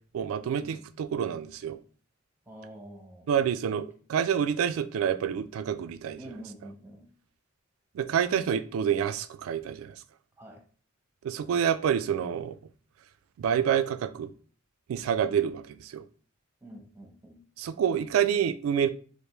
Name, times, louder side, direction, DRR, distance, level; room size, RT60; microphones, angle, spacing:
voice 1, 0.1-1.8 3.3-6.2 8.0-10.0 11.2-12.6 13.4-14.3 14.9-16.0 17.6-18.9, right 8 dB, 90° right, 0.3 m, -27 dB
voice 2, 2.5-3.3 6.2-7.1 10.4-10.6 16.6-17.4, right 1 dB, 10° right, 0.7 m, -46 dB
3.3 x 2.5 x 3.0 m
head